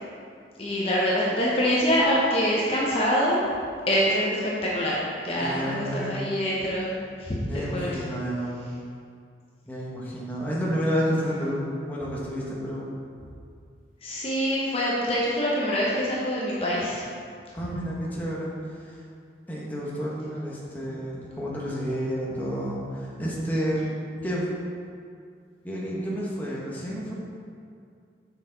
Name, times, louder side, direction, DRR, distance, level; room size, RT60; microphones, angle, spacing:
voice 1, 0.6-3.5 3.9-5.0 5.2-8.0 14.0-17.0, equal, 35° left, -5 dB, 0.9 m, -25 dB
voice 2, 5.4-6.1 7.5-8.5 9.6-12.9 17.5-19.0 19.5-23.9 24.2-24.4 25.6-27.1, equal, 10° left, -6 dB, 1.1 m, -30 dB
6.5 x 6.1 x 3.9 m, 2.3 s
head